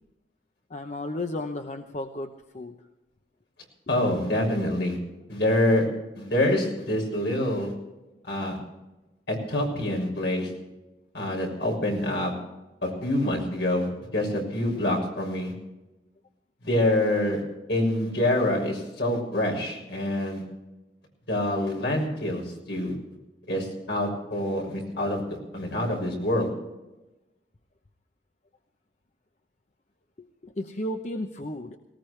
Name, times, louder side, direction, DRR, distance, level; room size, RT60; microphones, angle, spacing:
voice 1, 0.7-2.8 30.2-31.8, left 1 dB, 40° left, 5 dB, 0.8 m, -34 dB
voice 2, 3.9-5.0 5.3-5.9 6.1-7.7 8.3-8.6 9.3-10.5 11.1-12.3 12.8-15.5 16.6-17.4 17.7-20.4 21.3-22.9 23.5-25.2 25.5-26.5, left 1 dB, 70° left, 1 dB, 6.5 m, -26 dB
19.5 x 19.0 x 3.3 m, 1.0 s
head